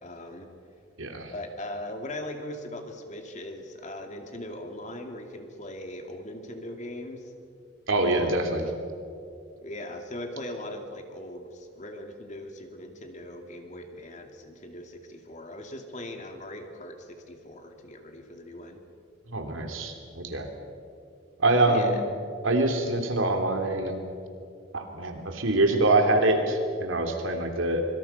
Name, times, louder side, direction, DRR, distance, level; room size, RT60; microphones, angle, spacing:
voice 1, 0.0-0.5 1.3-7.3 8.1-8.5 9.6-18.8 21.6-22.0, left 1 dB, 35° left, 4 dB, 2.5 m, -40 dB
voice 2, 1.0-1.3 7.9-8.6 19.3-20.5 21.4-22.0 22.4-24.0 24.7-27.9, right 2 dB, 80° right, 4 dB, 3.1 m, -25 dB
25.0 x 25.0 x 5.8 m, 2.5 s
head